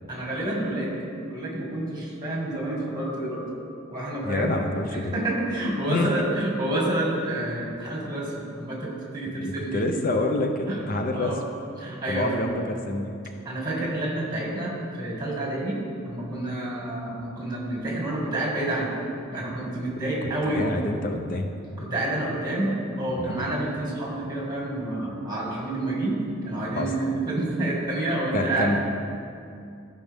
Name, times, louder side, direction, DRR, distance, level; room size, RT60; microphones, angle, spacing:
voice 1, 0.1-0.9 1.2-3.4 3.9-4.6 4.9-9.8 10.7-10.8 11.2-11.4 11.8-12.3 13.4-19.0 19.3-20.6 21.8-26.2 26.5-28.7, right 1 dB, 20° right, -3 dB, 1.9 m, -29 dB
voice 2, 4.2-5.1 5.9-6.1 9.4-11.4 12.1-13.1 20.4-21.5 23.2-23.5 26.8-26.9 28.3-28.8, left 2 dB, 40° left, 4 dB, 0.6 m, -27 dB
14.5 x 5.4 x 3.5 m, 2.5 s
head